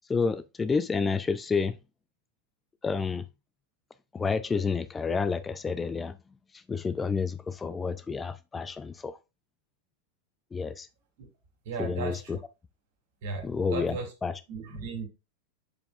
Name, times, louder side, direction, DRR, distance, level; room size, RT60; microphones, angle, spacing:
voice 1, 0.1-1.7 2.8-3.3 4.1-6.1 6.5-9.2 10.5-10.9 11.8-12.4 13.4-14.4, left 5 dB, 15° left, 0.4 m, -29 dB
voice 2, 11.6-12.4 13.2-14.1 14.5-15.1, right 4 dB, 50° right, 2.6 m, -36 dB
7.8 x 7.0 x 2.5 m
figure-of-eight pair, 90°, 0 cm